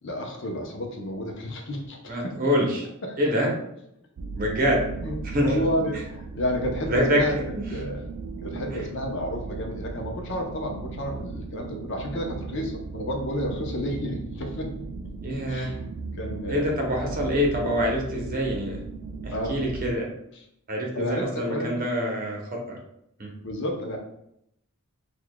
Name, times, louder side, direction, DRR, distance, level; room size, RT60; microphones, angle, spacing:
voice 1, 0.0-2.4 3.0-3.2 5.0-7.4 7.7-8.0 8.4-14.9 15.5-15.9 16.1-16.8 19.3-19.6 20.3-20.4 20.9-21.8 23.4-24.0, equal, 55° left, 1 dB, 0.7 m, -31 dB
voice 2, 2.1-2.8 3.2-3.5 4.4-4.8 5.3-5.7 6.9-7.2 7.5-7.7 15.2-15.7 16.5-18.8 19.2-20.1 20.7-22.8 23.2-23.3, equal, 40° right, 0 dB, 0.8 m, -25 dB
sound 1, 4.2-19.9, right 4 dB, 85° right, 0.4 m, -37 dB
6.4 x 2.3 x 2.2 m, 0.77 s
head